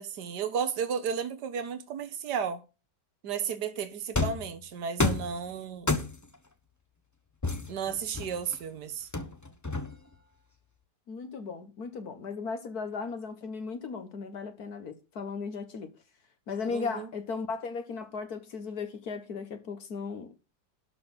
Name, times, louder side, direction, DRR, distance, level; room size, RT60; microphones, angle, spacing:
voice 1, 0.0-2.6 3.2-6.0 7.7-9.1 16.7-17.1, right 7 dB, 75° right, 1.7 m, -33 dB
sound 1, 4.2-4.5 5.0-5.4 5.9-6.4 7.4-8.6 9.1-10.1, left 3 dB, 15° left, 0.8 m, -29 dB
voice 2, 11.1-15.9 16.5-20.3, left 5 dB, 65° left, 1.8 m, -36 dB
12.0 x 4.3 x 7.2 m
omnidirectional pair, 1.8 m